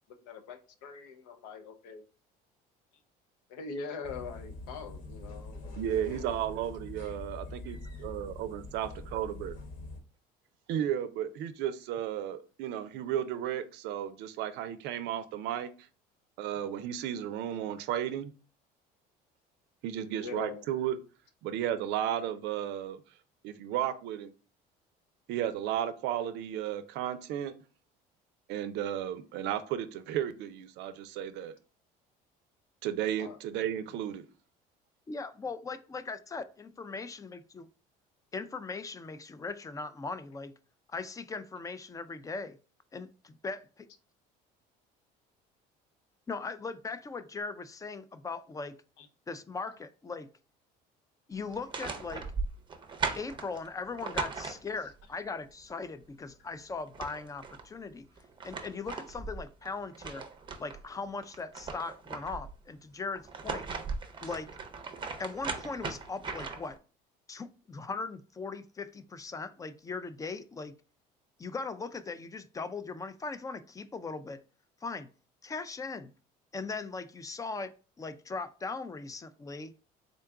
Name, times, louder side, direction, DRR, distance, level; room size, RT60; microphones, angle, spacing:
voice 1, 0.2-2.0 3.5-6.3 20.2-20.7 33.2-33.4 49.0-49.1 54.8-54.9, left 4 dB, 90° left, 0.6 m, -43 dB
sound 1, 4.0-10.0, left 2 dB, 50° left, 1.1 m, -44 dB
voice 2, 5.8-9.5 10.7-15.7 16.4-18.3 19.8-21.0 21.4-23.0 23.4-24.3 25.3-27.5 28.5-31.5 32.8-34.2, right 10 dB, 70° right, 0.5 m, -34 dB
voice 3, 35.1-37.7 38.3-40.5 40.9-42.6 42.9-43.9 46.3-48.8 49.3-50.3 51.3-52.2 53.2-58.1 58.4-60.2 60.6-63.7 64.2-64.5 65.2-66.8 67.3-70.7 71.4-74.4 74.8-75.1 75.4-76.1 76.5-77.7 78.0-79.7, left 4 dB, 20° left, 0.3 m, -39 dB
sound 2, 51.5-55.0 56.5-56.6 56.8-57.7 58.2-60.8 61.2-62.6 63.2-66.8, right 4 dB, 25° right, 0.6 m, -38 dB
3.8 x 2.3 x 3.6 m
supercardioid pair, 95°, 18 cm